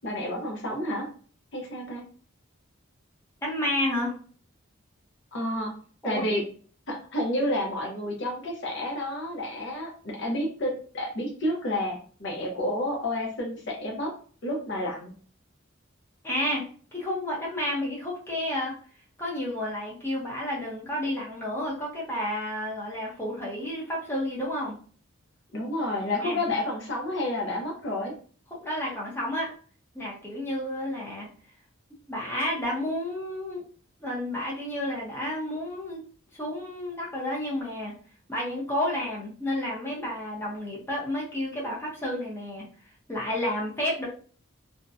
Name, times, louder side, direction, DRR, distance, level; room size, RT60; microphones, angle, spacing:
voice 1, 0.0-1.1 1.5-2.0 5.3-5.7 6.0-6.4 6.9-14.1 14.4-15.1 25.5-28.1, left 1 dB, 60° left, 0 dB, 0.7 m, -30 dB
voice 2, 3.4-4.2 6.0-6.3 16.2-16.6 16.9-18.8 19.2-24.8 26.2-26.5 28.6-29.5 29.9-31.3 32.1-33.6 34.0-36.0 36.3-37.9 38.3-42.6 43.1-44.1, left 1 dB, 10° left, -5 dB, 0.7 m, -31 dB
2.6 x 2.1 x 2.5 m, 0.43 s
head